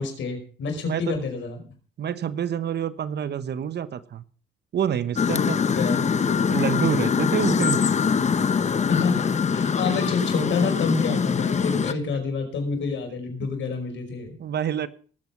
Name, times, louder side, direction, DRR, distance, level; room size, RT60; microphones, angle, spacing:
voice 1, 0.0-1.7 5.8-6.1 8.5-14.3, left 4 dB, 70° left, 4 dB, 5.2 m, -28 dB
voice 2, 2.0-4.2 4.7-5.6 6.2-7.8 11.8-11.9 13.4-13.5 14.4-14.9, right 9 dB, 55° right, 14 dB, 1.1 m, -27 dB
sound 1, 5.2-11.9, left 6 dB, 35° left, 1.0 m, -23 dB
19.5 x 8.1 x 6.0 m, 0.42 s
cardioid pair, 90°, 20 cm